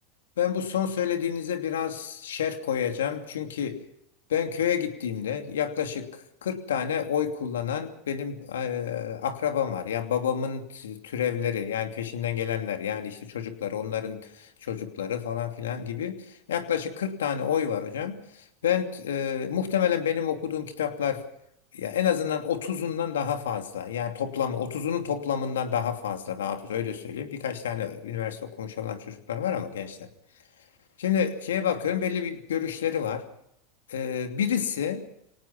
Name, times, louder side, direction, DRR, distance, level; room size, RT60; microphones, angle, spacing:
voice 1, 0.4-3.8 4.3-6.1 6.4-18.2 18.6-21.2 21.7-30.1 31.0-33.3 33.9-35.0, left 8 dB, 85° left, 6 dB, 2.7 m, -29 dB
24.5 x 18.5 x 5.8 m, 0.78 s
hypercardioid pair, 95°, 0 cm